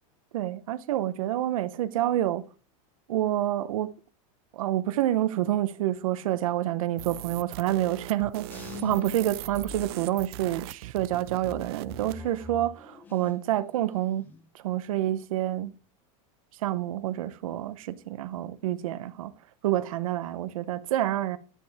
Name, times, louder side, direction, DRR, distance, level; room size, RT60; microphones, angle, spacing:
voice 1, 0.3-2.4 3.1-3.9 4.5-14.2 14.5-15.7 16.6-19.3 19.6-21.4, right 13 dB, 90° right, 0.8 m, -28 dB
sound 1, 7.0-12.2, right 17 dB, 50° right, 0.4 m, -40 dB
sound 2, 8.5-10.5 11.0-13.6 13.9-14.4, left 5 dB, 10° left, 0.6 m, -44 dB
10.0 x 7.1 x 3.5 m
supercardioid pair, 175°, 17 cm